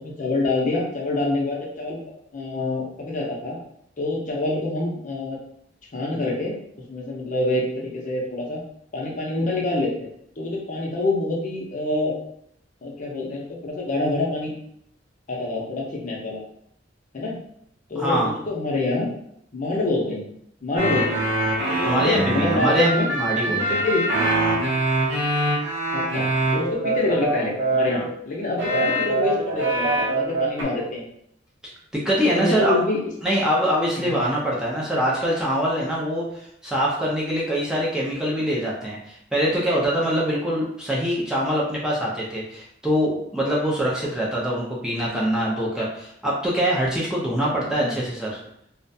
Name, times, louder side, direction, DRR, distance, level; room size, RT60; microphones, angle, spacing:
voice 1, 0.0-2.0 2.3-3.6 4.0-5.4 5.9-6.6 6.9-8.6 8.9-9.9 10.4-12.2 12.8-14.5 15.3-16.4 17.1-17.4 17.9-19.1 19.5-20.3 20.6-23.1 23.4-24.1 25.9-26.3 26.5-31.0 32.2-33.0 34.0-34.2 47.6-48.0, left 2 dB, 45° left, -2 dB, 0.6 m, -26 dB
voice 2, 18.0-18.3 21.8-23.8 31.9-32.8 33.2-48.4, equal, 5° right, -6 dB, 0.4 m, -24 dB
sound 1, 20.8-28.1 28.6-30.6, right 1 dB, 85° right, 0.7 m, -23 dB
2.4 x 2.1 x 2.6 m, 0.70 s
head